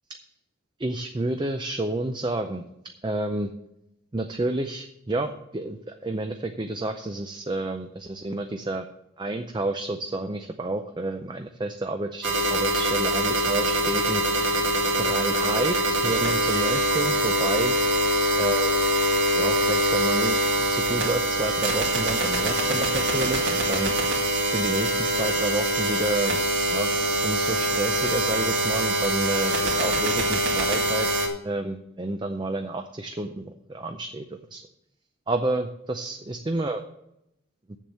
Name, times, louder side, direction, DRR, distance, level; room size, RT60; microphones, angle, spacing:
voice 1, 0.8-2.6 3.0-3.5 4.1-8.9 9.2-14.2 15.0-17.7 18.4-18.8 19.4-23.9 24.5-26.4 26.7-26.9 27.2-34.6 35.3-36.8, right 2 dB, 20° right, 6 dB, 0.5 m, -30 dB
sound 1, 12.2-31.3, right 1 dB, 60° right, 2.2 m, -24 dB
7.4 x 7.1 x 7.8 m, 0.81 s
head